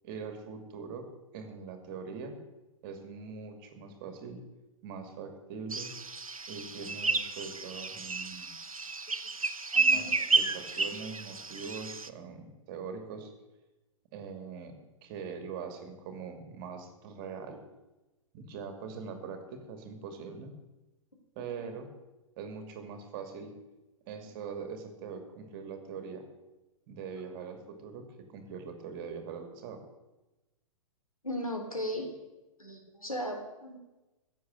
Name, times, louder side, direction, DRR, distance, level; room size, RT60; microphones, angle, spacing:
voice 1, 0.0-1.1 1.3-2.4 2.8-4.4 4.8-5.9 6.5-8.5 9.9-13.3 14.1-14.7 15.0-17.6 18.3-20.5 21.4-21.9 22.4-23.5 24.1-26.2 26.9-29.8, right 5 dB, 40° right, 6 dB, 2.6 m, -42 dB
sound 1, 5.7-12.1, right 4 dB, 85° right, 0.9 m, -31 dB
voice 2, 9.7-10.2 21.4-21.7 24.2-24.3 31.2-32.1 32.6-33.8, equal, 90° left, 3 dB, 3.4 m, -37 dB
16.0 x 7.4 x 9.2 m, 1.1 s
figure-of-eight pair, 110°, 17 cm